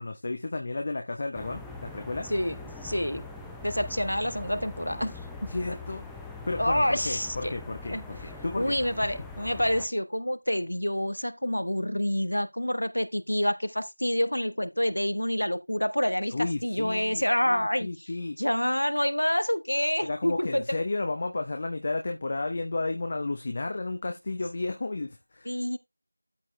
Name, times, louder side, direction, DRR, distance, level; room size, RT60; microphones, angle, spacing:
voice 1, 0.0-2.3 5.5-6.1 6.5-8.7 16.3-18.4 20.0-25.5, left 2 dB, 30° left, 1.0 m, -32 dB
sound 1, 1.3-9.9, left 3 dB, ahead, 0.6 m, -42 dB
voice 2, 2.8-3.2 3.6-5.1 5.4-5.5 6.6-7.5 7.9-8.0 8.6-18.1 18.4-20.6 25.4-25.8, equal, 85° left, 1.4 m, -27 dB
13.0 x 4.5 x 3.3 m
figure-of-eight pair, 175°, 0 cm